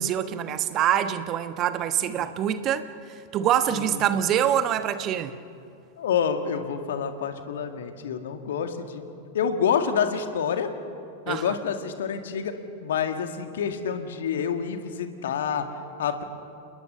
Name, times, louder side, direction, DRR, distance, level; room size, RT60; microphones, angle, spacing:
voice 1, 0.0-2.9 3.3-5.4 11.3-11.5, right 10 dB, 35° right, 1.2 m, -25 dB
voice 2, 3.7-4.0 6.0-9.1 9.3-10.7 11.3-12.5 12.8-15.7 16.0-16.2, left 7 dB, 60° left, 2.0 m, -28 dB
29.0 x 20.0 x 6.7 m
figure-of-eight pair, 90°, 0 cm